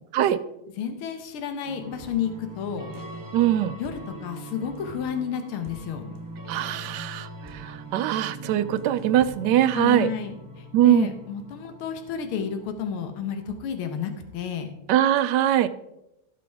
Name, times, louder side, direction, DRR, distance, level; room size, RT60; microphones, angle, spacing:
voice 1, 0.8-2.9 3.8-6.2 9.7-14.7, left 8 dB, 80° left, 7 dB, 1.9 m, -31 dB
sound 1, 1.6-14.2, right 1 dB, 20° right, 0.5 m, -42 dB
voice 2, 3.3-3.7 6.5-10.1 10.7-11.1 14.9-15.7, right 12 dB, 75° right, 11 dB, 1.0 m, -22 dB
17.0 x 6.0 x 3.5 m, 0.87 s
omnidirectional pair, 2.3 m